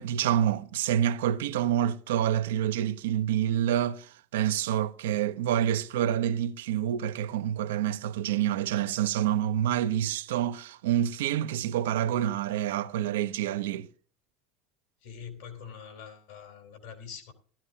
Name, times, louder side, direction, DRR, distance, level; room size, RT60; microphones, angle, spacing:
voice 1, 0.0-13.9, right 11 dB, 85° right, 0.6 m, -27 dB
voice 2, 15.0-17.3, left 7 dB, 80° left, 3.3 m, -44 dB
16.0 x 13.0 x 2.7 m
supercardioid pair, 100°, 0 cm